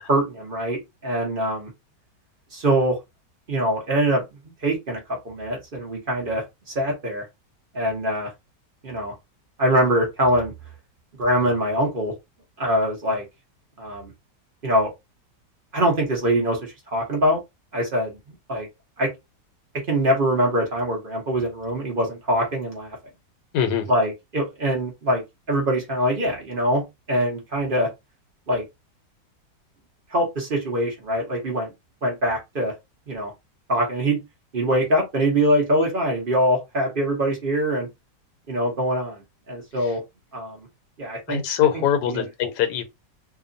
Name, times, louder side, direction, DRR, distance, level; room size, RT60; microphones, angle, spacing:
voice 1, 0.0-1.7 2.5-3.0 3.5-4.2 4.6-5.0 5.2-7.2 7.7-8.3 8.8-9.1 9.6-10.5 11.2-12.1 12.6-13.2 13.8-14.1 14.6-14.9 15.7-17.4 17.7-18.2 18.5-18.7 19.0-19.1 19.9-23.0 23.9-26.8 27.1-27.9 28.5-28.6 30.1-31.7 32.0-32.7 33.1-33.3 33.7-34.2 34.5-37.9 38.5-40.0 40.3-40.6 41.0-41.4 42.1-42.2, equal, 45° right, 0.8 m, -23 dB
voice 2, 23.5-23.9 39.8-40.0 41.3-42.8, left 9 dB, 75° left, 1.2 m, -23 dB
2.9 x 2.2 x 2.5 m
omnidirectional pair, 1.8 m